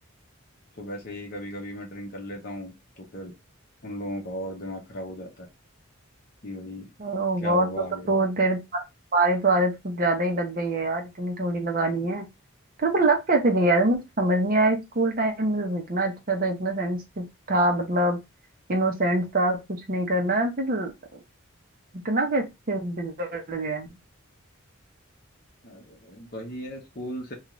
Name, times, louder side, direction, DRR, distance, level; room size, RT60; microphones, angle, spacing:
voice 1, 0.8-3.3 3.8-5.5 6.4-6.9 7.4-8.1 25.6-27.3, equal, 45° left, 1 dB, 0.8 m, -36 dB
voice 2, 7.0-7.7 8.1-8.8 9.1-12.3 12.8-18.2 18.7-21.2 22.0-23.9, right 2 dB, 40° right, 3 dB, 0.7 m, -24 dB
2.5 x 2.4 x 3.0 m, 0.21 s
head